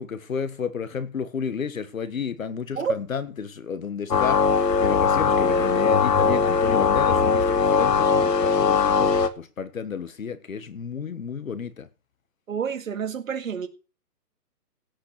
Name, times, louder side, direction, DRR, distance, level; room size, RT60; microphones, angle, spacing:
voice 1, 0.0-11.9, left 6 dB, 55° left, 1.5 m, -32 dB
sound 1, 4.1-9.3, left 5 dB, 85° left, 1.9 m, -20 dB
voice 2, 12.5-13.7, right 6 dB, 55° right, 2.1 m, -28 dB
16.5 x 5.7 x 6.5 m
hypercardioid pair, 175°, 48 cm